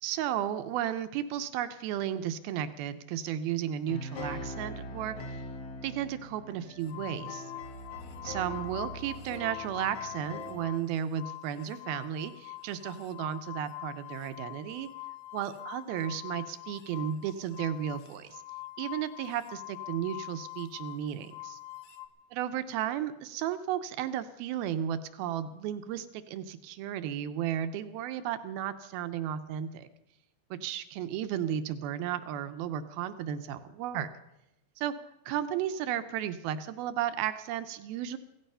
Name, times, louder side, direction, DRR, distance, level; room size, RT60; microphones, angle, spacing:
voice 1, 0.0-5.4 5.8-7.5 8.2-14.9 15.3-18.4 18.8-21.6 22.3-29.9 30.5-34.1 34.8-34.9 35.3-38.2, right 10 dB, 75° right, 11 dB, 2.3 m, -34 dB
sound 1, 3.9-10.7, left 1 dB, 55° left, 1.9 m, -42 dB
sound 2, 6.9-10.9 11.1-22.1, left 17 dB, 70° left, 2.6 m, -44 dB
17.0 x 15.0 x 5.6 m, 0.89 s
omnidirectional pair, 4.9 m